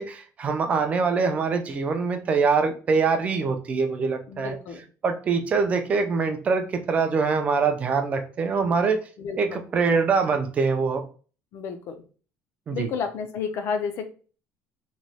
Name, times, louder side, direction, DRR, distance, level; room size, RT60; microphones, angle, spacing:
voice 1, 0.0-4.6 5.0-9.0 9.4-11.0 12.7-12.9, right 5 dB, 25° right, 6 dB, 0.4 m, -24 dB
voice 2, 4.3-4.8 9.2-9.6 11.5-12.0 12.7-14.0, left 6 dB, 45° left, 7 dB, 0.5 m, -31 dB
3.1 x 2.2 x 4.0 m, 0.38 s
cardioid pair, 180°, 6 cm